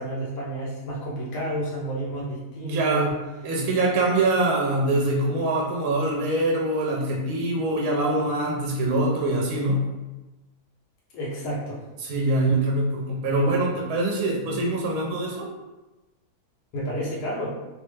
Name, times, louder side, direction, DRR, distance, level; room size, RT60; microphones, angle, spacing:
voice 1, 0.0-3.2 11.1-11.8 16.7-17.5, right 1 dB, 85° left, -6 dB, 1.4 m, -30 dB
voice 2, 2.6-3.1 3.4-9.9 12.0-15.5, right 2 dB, 75° right, -2 dB, 1.0 m, -24 dB
3.2 x 2.0 x 3.2 m, 1.1 s
omnidirectional pair, 1.7 m